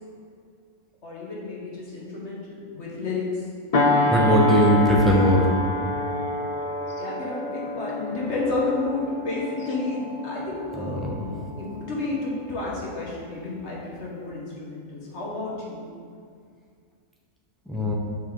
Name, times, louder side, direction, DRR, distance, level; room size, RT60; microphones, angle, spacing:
voice 1, 1.0-3.4 3.9-4.1 4.4-4.6 7.0-15.9, left 3 dB, 55° left, -4 dB, 1.6 m, -31 dB
sound 1, 3.7-12.6 13.0-13.3, left 1 dB, 75° left, 0.3 m, -27 dB
voice 2, 4.1-5.5 10.8-11.1 17.7-17.9, equal, ahead, -3 dB, 0.7 m, -19 dB
7.0 x 5.3 x 3.9 m, 2.1 s
omnidirectional pair, 1.5 m